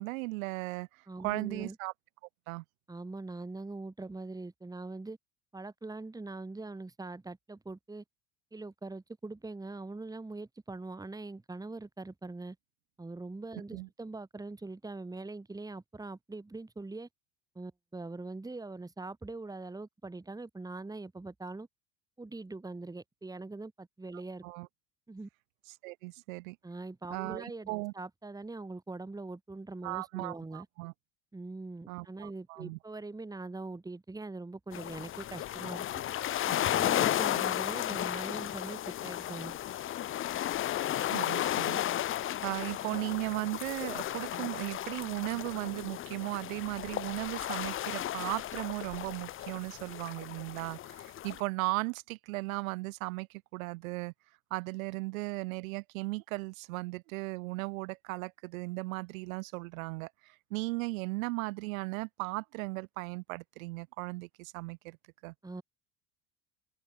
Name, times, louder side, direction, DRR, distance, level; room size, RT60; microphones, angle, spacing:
voice 1, 0.0-1.9 2.5-2.6 13.7-13.9 24.4-24.7 25.8-26.6 27.1-27.9 29.8-30.9 31.9-32.8 40.9-41.8 42.4-54.1 54.5-65.0 65.2-65.3, right 23 dB, 90° right, 3.2 m, -37 dB
voice 2, 1.1-1.8 2.9-5.2 5.5-8.0 8.5-12.6 13.0-17.1 17.6-21.7 22.2-24.5 25.1-25.3 26.6-30.7 31.3-36.0 36.5-39.5 65.4-65.6, right 3 dB, 10° right, 2.0 m, -42 dB
sound 1, 34.7-51.4, left 12 dB, 35° left, 0.6 m, -34 dB
open air
supercardioid pair, 105°, 39 cm